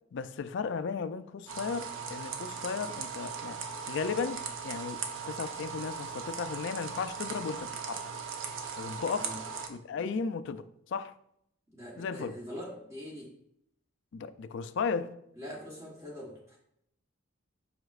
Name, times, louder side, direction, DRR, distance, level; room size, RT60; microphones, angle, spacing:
voice 1, 0.1-3.6 3.9-8.0 8.8-9.3 9.7-11.1 12.0-12.3 14.1-15.1, left 5 dB, 65° left, 0.4 m, -35 dB
sound 1, 1.5-9.7, right 6 dB, 75° right, 0.8 m, -39 dB
voice 2, 11.7-13.3 15.4-16.6, equal, 15° right, 1.1 m, -43 dB
7.8 x 5.1 x 2.4 m
head